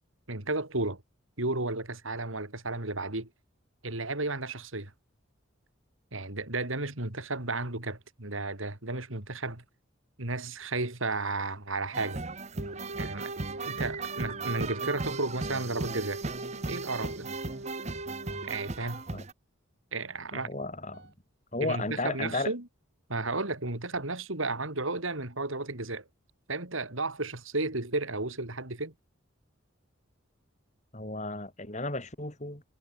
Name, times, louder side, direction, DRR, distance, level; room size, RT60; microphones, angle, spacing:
voice 1, 0.3-1.0 1.4-3.3 3.8-4.9 6.1-9.6 10.2-12.2 13.0-13.3 13.6-16.2 16.7-17.3 18.4-19.0 19.9-20.5 21.6-22.7 23.1-26.0 26.5-28.9, right 2 dB, 75° right, 3.6 m, -33 dB
sound 1, 11.9-19.3, right 3 dB, 30° right, 0.9 m, -37 dB
sound 2, 12.6-19.1 20.9-21.1, right 1 dB, 55° right, 2.2 m, -42 dB
voice 2, 20.3-21.1 21.5-22.5 30.9-32.6, left 2 dB, 35° left, 4.2 m, -34 dB
head